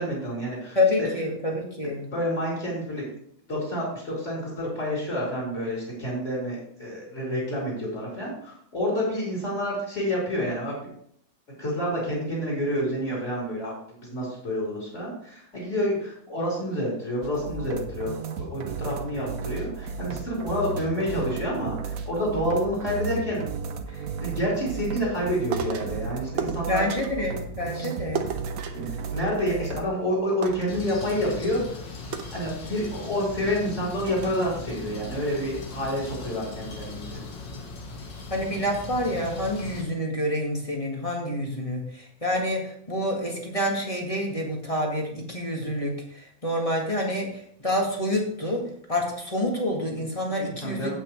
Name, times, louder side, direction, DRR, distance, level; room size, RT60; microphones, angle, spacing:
voice 1, 0.0-1.1 2.1-3.0 3.5-10.9 11.5-13.7 14.0-23.5 23.9-26.8 27.7-27.9 28.7-31.6 32.3-37.2 50.6-50.9, equal, 35° left, -6 dB, 4.4 m, -28 dB
voice 2, 0.7-2.1 26.7-28.2 38.3-48.6 48.9-50.9, left 1 dB, 20° left, -1 dB, 1.7 m, -28 dB
sound 1, 17.2-29.8, right 5 dB, 55° right, 1.1 m, -34 dB
sound 2, 25.5-26.0 26.4-27.3 28.1-29.7 30.0-30.1 30.4-31.4 32.1-33.1 33.6-33.7 34.1-34.5, right 7 dB, 75° right, 1.6 m, -35 dB
sound 3, 30.7-39.8, left 3 dB, 70° left, 2.3 m, -39 dB
16.5 x 6.0 x 3.2 m, 0.66 s
omnidirectional pair, 2.2 m